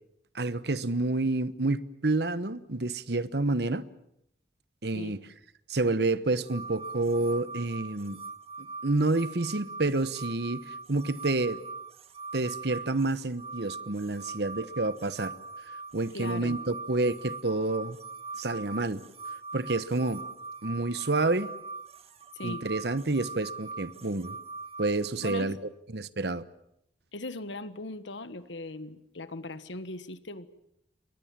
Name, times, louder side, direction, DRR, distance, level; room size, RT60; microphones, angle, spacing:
voice 1, 0.3-3.9 4.8-5.2 5.7-8.2 8.6-11.6 12.3-15.3 15.9-18.0 18.4-19.0 19.5-20.2 20.6-21.5 22.4-24.4 24.8-25.6 25.9-26.4, right 2 dB, 60° right, 1.1 m, -29 dB
sound 1, 6.5-25.5, right 4 dB, 35° right, 2.2 m, -42 dB
voice 2, 16.1-16.6 22.3-22.7 25.2-25.6 27.1-30.5, left 2 dB, 85° left, 1.5 m, -39 dB
29.0 x 23.0 x 7.5 m
head